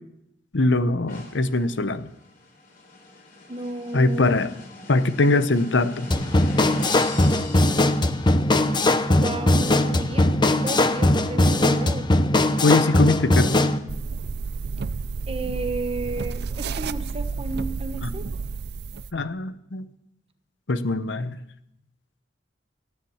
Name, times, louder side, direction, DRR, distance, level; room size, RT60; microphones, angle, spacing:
voice 1, 0.5-2.1 3.9-4.5 4.9-6.1 12.6-13.5 18.0-18.1 19.1-19.9 20.7-21.4, left 2 dB, 75° left, 12 dB, 0.8 m, -22 dB
sound 1, 1.1-8.7, left 2 dB, 50° left, 3.8 m, -41 dB
voice 2, 3.5-4.4 9.2-10.3 10.6-12.1 15.3-18.3, right 2 dB, 30° right, 8 dB, 1.1 m, -33 dB
sound 2, 6.1-13.8, left 1 dB, 25° left, 0.8 m, -20 dB
sound 3, 13.9-19.1, right 4 dB, 60° right, 0.5 m, -31 dB
15.5 x 10.0 x 7.2 m, 0.81 s
head